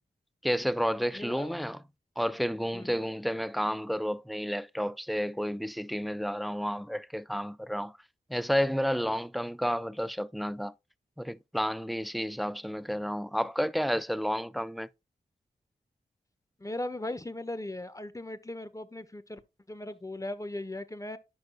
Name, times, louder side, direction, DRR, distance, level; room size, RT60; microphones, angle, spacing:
voice 1, 0.4-1.8 2.2-7.9 8.3-10.7 11.2-14.9, equal, ahead, 0.5 m, -31 dB
voice 2, 1.1-1.6 2.7-3.0 16.6-19.4 19.7-21.2, left 1 dB, 20° left, 1.2 m, -38 dB
10.5 x 6.2 x 2.2 m
cardioid pair, 40°, 18 cm